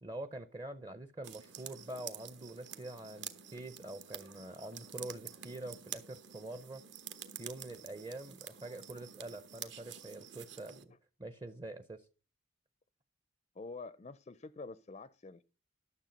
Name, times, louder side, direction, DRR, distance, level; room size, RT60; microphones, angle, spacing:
voice 1, 0.0-6.8 7.4-10.9 11.2-12.1, right 1 dB, 20° right, 0.6 m, -45 dB
sound 1, 1.2-10.8, right 9 dB, 60° right, 1.2 m, -49 dB
voice 2, 13.5-15.4, left 3 dB, 35° left, 0.4 m, -47 dB
12.0 x 7.1 x 5.2 m
head